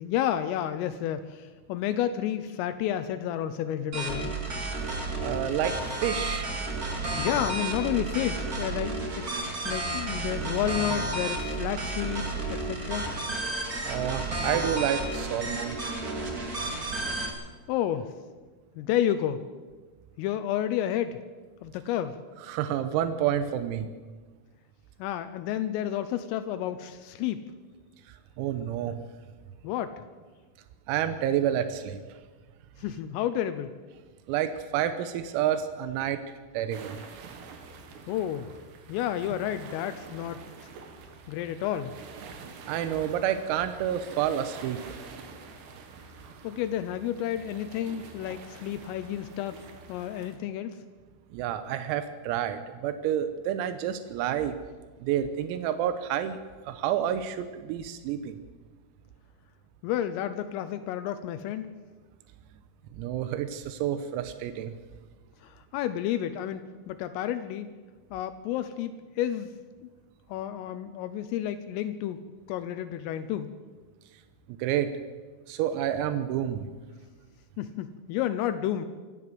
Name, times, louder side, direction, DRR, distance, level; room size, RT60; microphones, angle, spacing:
voice 1, 0.0-4.3 6.9-9.3 9.7-13.1 17.7-18.1 18.8-19.4 20.2-21.2 21.6-22.2 25.0-27.4 29.6-30.0 32.8-33.7 38.1-38.5 38.9-40.7 41.3-41.9 46.4-49.6 49.9-50.8 59.8-61.7 65.4-67.7 68.1-69.5 70.3-72.2 72.5-73.5 77.6-78.9, left 11 dB, 80° left, 10 dB, 3.4 m, -31 dB
sound 1, 3.9-17.3, right 2 dB, 35° right, 1.5 m, -32 dB
voice 2, 5.2-6.5 13.8-15.8 22.5-23.9 28.4-29.0 30.9-32.0 34.3-37.0 42.7-44.8 51.3-54.6 55.0-56.4 56.7-58.4 63.0-64.7 74.6-74.9 75.5-76.7, right 10 dB, 90° right, 10 dB, 3.7 m, -29 dB
sound 2, 36.7-50.4, right 5 dB, 65° right, 3.6 m, -47 dB
24.5 x 13.5 x 7.8 m, 1.4 s
omnidirectional pair, 6.0 m